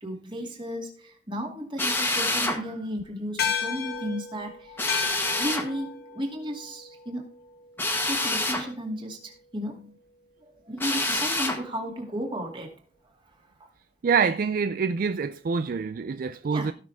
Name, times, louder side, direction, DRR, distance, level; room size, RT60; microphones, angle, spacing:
voice 1, 0.0-4.8 5.4-7.3 8.1-9.9 10.4-12.8 13.6-13.7 16.5-16.7, equal, 30° right, 2.5 m, -34 dB
Drill, 1.8-2.6 4.8-5.7 7.8-8.7 10.8-11.6, left 2 dB, 10° left, 1.5 m, -27 dB
sound 1, 3.4-8.1, left 7 dB, 60° left, 1.8 m, -34 dB
voice 2, 14.0-16.7, right 5 dB, 50° right, 0.4 m, -26 dB
16.5 x 6.4 x 3.5 m
head